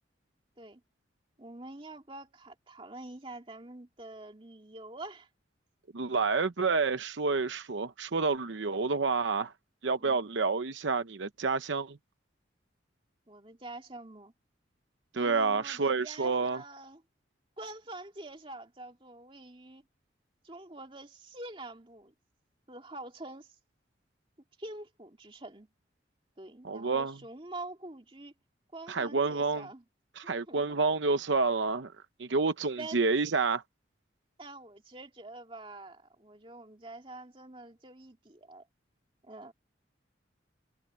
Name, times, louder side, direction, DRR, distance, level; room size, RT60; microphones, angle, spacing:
voice 1, 1.4-5.3 10.0-10.3 13.3-14.3 15.1-17.0 17.6-19.8 20.4-22.1 22.7-23.6 24.6-25.7 26.4-28.3 28.7-29.8 30.2-30.8 32.8-33.0 34.4-38.7 39.2-39.5, right 2 dB, 30° right, 2.4 m, -46 dB
voice 2, 5.9-9.5 9.8-12.0 15.1-16.6 26.6-27.1 28.9-29.7 30.2-31.9 32.2-33.6, right 4 dB, 80° right, 0.8 m, -29 dB
head